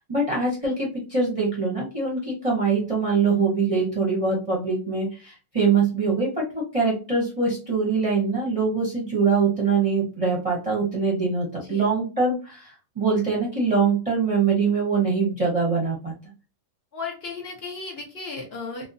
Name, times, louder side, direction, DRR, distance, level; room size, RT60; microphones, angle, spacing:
voice 1, 0.0-16.1, right 4 dB, 35° right, -4 dB, 0.6 m, -23 dB
voice 2, 16.9-18.9, left 4 dB, 55° left, 0 dB, 0.8 m, -34 dB
2.7 x 2.1 x 2.5 m, 0.33 s
omnidirectional pair, 1.5 m